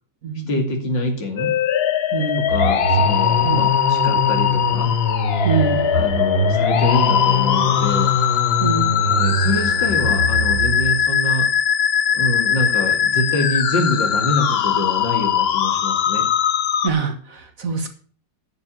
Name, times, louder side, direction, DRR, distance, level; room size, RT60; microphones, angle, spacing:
voice 1, 0.5-1.5 2.4-4.9 5.9-8.1 9.0-11.5 12.1-16.3, left 1 dB, 90° left, 4 dB, 3.5 m, -25 dB
sound 1, 1.4-16.9, left 9 dB, 70° left, 0.5 m, -20 dB
voice 2, 2.1-2.5 3.4-3.6 5.4-5.8 8.6-9.0 16.8-17.9, right 4 dB, 50° right, 7 dB, 2.0 m, -23 dB
sound 2, 2.5-11.0, left 1 dB, 80° right, 3.5 m, -23 dB
9.7 x 7.3 x 8.5 m, 0.43 s
omnidirectional pair, 1.9 m